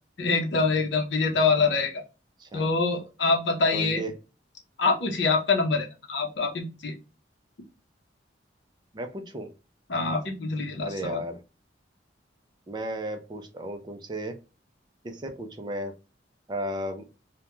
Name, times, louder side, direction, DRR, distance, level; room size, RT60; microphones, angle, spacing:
voice 1, 0.2-2.0 2.5-4.0 4.8-6.9 9.9-11.2, left 4 dB, 70° left, 1 dB, 0.6 m, -25 dB
voice 2, 3.7-4.1 8.9-9.5 10.8-11.4 12.7-14.4 15.0-15.9 16.5-17.1, right 1 dB, 25° right, 6 dB, 0.4 m, -34 dB
2.3 x 2.1 x 2.9 m, 0.30 s
head